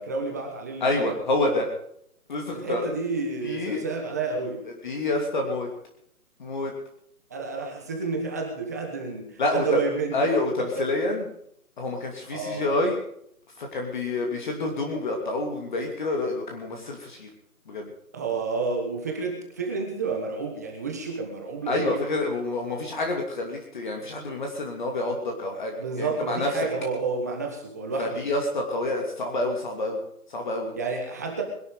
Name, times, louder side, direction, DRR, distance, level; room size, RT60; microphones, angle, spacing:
voice 1, 0.0-1.2 2.5-4.6 7.3-10.2 10.6-10.7 12.3-12.7 18.1-22.0 25.8-28.2 30.7-31.4, right 4 dB, 10° right, 2 dB, 1.1 m, -30 dB
voice 2, 0.8-1.7 2.3-2.9 3.4-3.8 4.8-5.7 6.4-6.7 9.4-9.8 10.1-11.3 11.8-13.0 13.6-17.3 17.7-17.9 21.7-26.5 28.0-30.0 30.3-30.7, left 2 dB, 30° left, 2 dB, 2.8 m, -28 dB
21.5 x 12.0 x 5.0 m, 0.70 s
hypercardioid pair, 170°, 45 cm